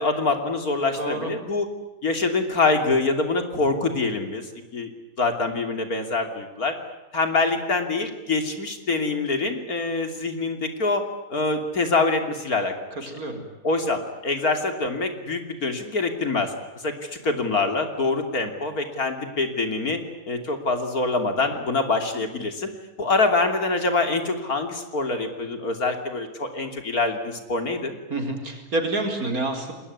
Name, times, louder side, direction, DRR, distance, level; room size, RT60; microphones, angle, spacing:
voice 1, 0.0-1.7 2.0-4.5 4.7-4.9 5.2-6.8 7.1-11.1 11.3-12.7 13.6-16.5 16.8-20.0 20.2-22.7 23.0-28.0, left 3 dB, 75° left, 6 dB, 3.5 m, -25 dB
voice 2, 1.0-1.3 13.1-13.4 28.1-29.7, right 2 dB, 70° right, 4 dB, 5.0 m, -28 dB
29.5 x 21.0 x 9.7 m, 1.0 s
omnidirectional pair, 1.6 m